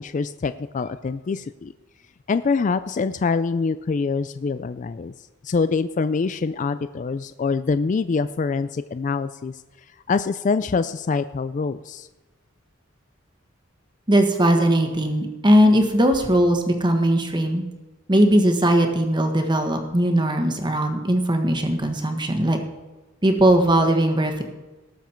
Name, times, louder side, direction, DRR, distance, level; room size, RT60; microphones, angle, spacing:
voice 1, 0.0-1.7 2.3-5.1 5.4-9.5 10.1-12.1, left 4 dB, 40° left, 12 dB, 0.3 m, -25 dB
voice 2, 14.1-17.6 18.1-22.6 23.2-24.4, right 1 dB, 20° right, 5 dB, 1.4 m, -19 dB
18.5 x 7.2 x 4.5 m, 1.2 s
head